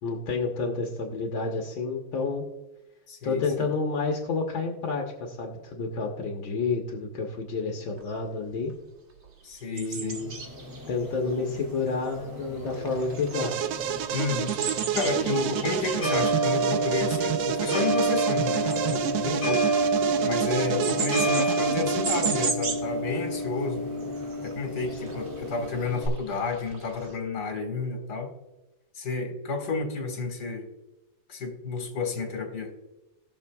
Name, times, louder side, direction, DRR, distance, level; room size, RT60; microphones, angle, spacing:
voice 1, 0.0-2.4 3.2-8.7 9.7-10.4 10.9-13.6, left 4 dB, 75° left, 0 dB, 1.9 m, -30 dB
voice 2, 3.1-3.7 9.4-10.2 14.1-14.5 14.9-19.7 20.2-23.9 24.4-28.3 28.9-30.7 31.3-32.7, left 4 dB, 55° left, 3 dB, 2.3 m, -31 dB
sound 1, 8.0-8.1 8.5-8.7 9.1-12.4 12.7-22.9 23.3-23.4 23.7-27.2, right 4 dB, 45° right, 1.6 m, -37 dB
sound 2, 10.1-26.1, right 2 dB, 10° right, 2.1 m, -30 dB
sound 3, 13.3-22.5, right 10 dB, 75° right, 1.3 m, -30 dB
20.0 x 6.8 x 2.3 m, 1.0 s
omnidirectional pair, 2.1 m